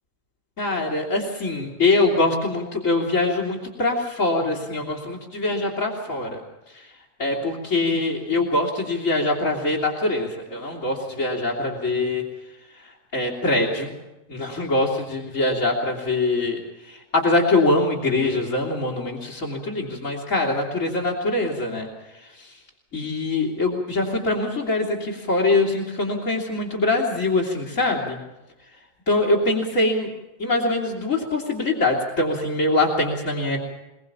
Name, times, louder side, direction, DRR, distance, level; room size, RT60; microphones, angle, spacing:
voice 1, 0.6-6.4 7.2-12.2 13.1-13.9 14.3-16.6 17.1-21.9 22.9-28.2 29.1-30.1 30.4-33.6, left 2 dB, 90° left, 0 dB, 3.5 m, -23 dB
22.0 x 22.0 x 7.0 m, 1.0 s
omnidirectional pair, 1.3 m